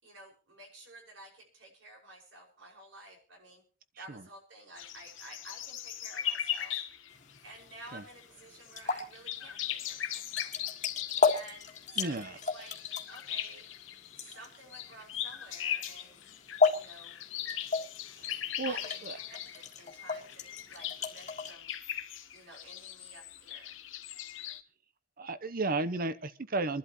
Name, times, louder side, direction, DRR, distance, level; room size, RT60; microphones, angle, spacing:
voice 1, 0.0-3.6 4.0-6.7 7.4-10.5 11.2-12.8 13.1-13.7 14.2-16.2 16.7-17.1 18.7-21.7 22.3-23.8, right 1 dB, 80° right, 0 dB, 5.8 m, -52 dB
sound 1, 4.8-7.7 8.0-8.2 8.6-8.7 9.0-24.6, left 11 dB, 85° left, 1.0 m, -39 dB
sound 2, 7.1-21.5, left 5 dB, 40° left, 1.7 m, -35 dB
voice 2, 12.0-12.4 18.1-18.8 19.0-19.2 25.2-26.8, right 3 dB, 50° right, 12 dB, 0.8 m, -34 dB
27.0 x 11.5 x 3.1 m, 0.37 s
head